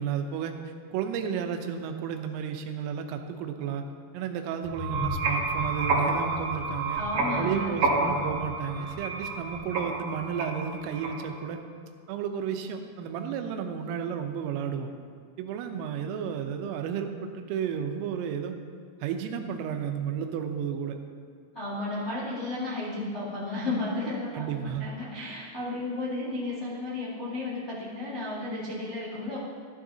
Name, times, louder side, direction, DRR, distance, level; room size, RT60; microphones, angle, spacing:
voice 1, 0.0-3.8 4.1-7.0 7.4-11.6 12.1-14.9 15.4-18.5 19.0-21.0 24.3-24.9, right 7 dB, 85° right, 5 dB, 3.4 m, -32 dB
sound 1, 4.6-11.4, right 3 dB, 50° right, 2.5 m, -29 dB
voice 2, 6.9-7.7 21.5-29.4, left 2 dB, 85° left, -9 dB, 0.6 m, -33 dB
14.5 x 11.0 x 2.8 m, 2.1 s
omnidirectional pair, 5.8 m